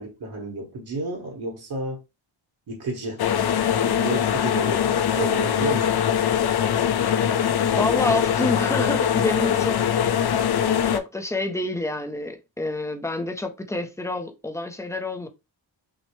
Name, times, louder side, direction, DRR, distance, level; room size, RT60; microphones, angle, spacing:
voice 1, 0.0-2.0 2.7-3.2 3.8-5.9, right 2 dB, 60° right, 1.3 m, -31 dB
sound 1, 3.2-11.0, left 9 dB, 60° left, 0.5 m, -22 dB
voice 2, 7.7-9.9 10.9-15.3, left 2 dB, 5° left, 0.5 m, -28 dB
6.2 x 2.1 x 3.1 m
wide cardioid pair, 150°, 45 cm